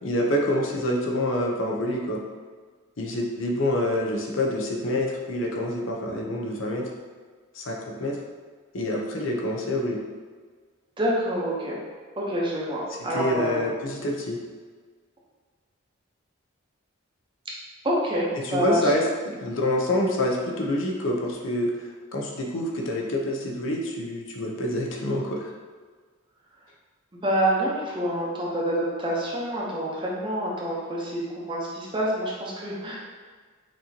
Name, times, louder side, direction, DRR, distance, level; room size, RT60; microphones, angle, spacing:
voice 1, 0.0-2.2 3.0-6.9 7.5-8.2 8.7-10.0 13.0-14.4 18.4-19.1 19.4-25.5, left 1 dB, 65° left, -1 dB, 0.7 m, -27 dB
voice 2, 11.0-11.8 12.2-13.6 17.8-18.8 27.2-33.0, right 1 dB, 25° right, -4 dB, 0.8 m, -27 dB
6.1 x 2.9 x 2.8 m, 1.5 s
head